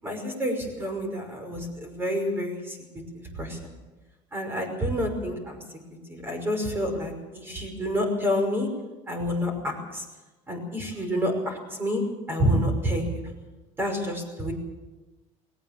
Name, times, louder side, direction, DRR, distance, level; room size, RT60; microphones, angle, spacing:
voice 1, 0.0-2.8 3.1-3.6 4.3-5.6 6.1-8.7 9.1-10.0 10.5-12.0 12.3-13.2 13.8-14.5, equal, 15° right, 5 dB, 5.6 m, -28 dB
20.5 x 18.5 x 7.5 m, 1.1 s
cardioid pair, 150°, 14 cm